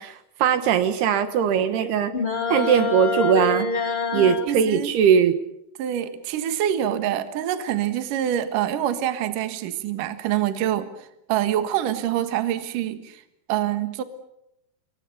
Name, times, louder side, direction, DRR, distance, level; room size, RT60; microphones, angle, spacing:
voice 1, 0.0-2.1 2.5-3.7 4.1-5.4, right 8 dB, 75° right, 10 dB, 3.4 m, -20 dB
sound 1, 2.1-4.5, left 5 dB, 15° left, 2.5 m, -26 dB
voice 2, 4.1-4.9 5.8-13.2 13.5-14.0, right 11 dB, 60° right, 9 dB, 2.9 m, -26 dB
28.5 x 23.0 x 6.9 m, 0.81 s
omnidirectional pair, 4.7 m